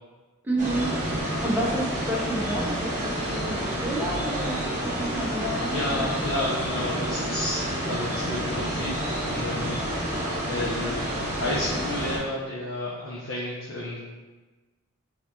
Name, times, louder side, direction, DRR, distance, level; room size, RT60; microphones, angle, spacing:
voice 1, 0.4-0.9 1.4-6.0, right 1 dB, 10° right, -5 dB, 0.7 m, -30 dB
sound 1, 0.6-12.2, right 1 dB, 35° right, 1.2 m, -29 dB
voice 2, 5.6-9.0 9.2-10.2 10.5-14.1, left 1 dB, 60° left, -5 dB, 0.6 m, -32 dB
4.2 x 3.6 x 2.3 m, 1.3 s
head